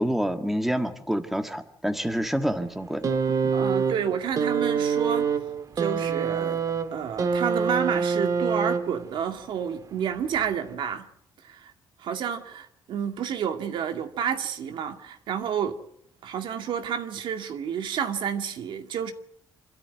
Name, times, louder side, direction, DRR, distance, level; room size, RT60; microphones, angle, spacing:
voice 1, 0.0-3.0, equal, 5° right, 1.8 m, -27 dB
sound 1, 3.0-9.2 10.2-10.4, right 6 dB, 45° right, 1.6 m, -26 dB
voice 2, 3.5-5.3 5.8-6.6 6.9-11.1 11.4-11.7 12.0-15.8 16.2-19.1, right 8 dB, 70° right, 2.2 m, -30 dB
26.5 x 13.0 x 9.5 m
cardioid pair, 120°, 8 cm